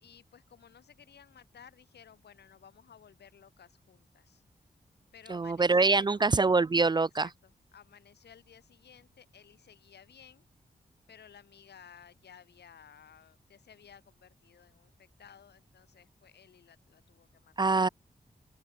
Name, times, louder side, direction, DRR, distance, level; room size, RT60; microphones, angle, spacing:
voice 1, 0.0-4.4 5.1-6.3 7.0-10.5 11.1-17.7, left 8 dB, 85° left, 3.2 m, -56 dB
voice 2, 5.3-7.3 17.6-17.9, right 3 dB, 25° right, 0.3 m, -24 dB
open air
cardioid pair, 40°, 17 cm